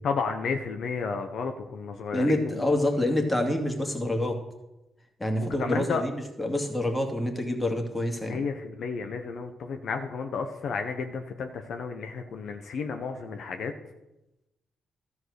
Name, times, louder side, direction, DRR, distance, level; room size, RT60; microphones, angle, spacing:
voice 1, 0.0-2.7 5.4-6.0 8.3-13.7, left 5 dB, 70° left, 6 dB, 0.8 m, -32 dB
voice 2, 2.1-4.4 5.2-8.4, left 1 dB, 15° left, 3 dB, 2.2 m, -27 dB
13.0 x 4.8 x 6.5 m, 0.94 s
supercardioid pair, 60°, 0 cm